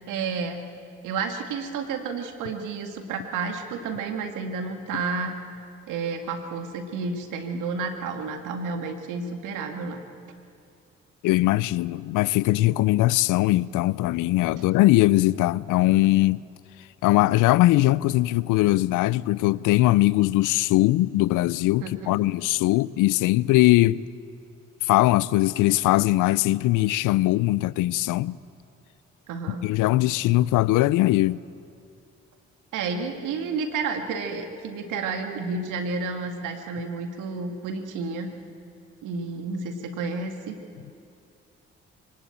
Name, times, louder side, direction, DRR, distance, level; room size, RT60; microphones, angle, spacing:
voice 1, 0.1-0.6 1.0-5.3 5.9-10.0 21.8-22.2 29.3-29.7 32.7-38.3 39.0-40.6, right 4 dB, 80° right, 2.1 m, -31 dB
voice 2, 11.2-16.4 17.0-24.0 24.8-28.4 29.5-31.4, left 17 dB, 80° left, 0.5 m, -21 dB
23.0 x 19.0 x 8.7 m
supercardioid pair, 50°, 31 cm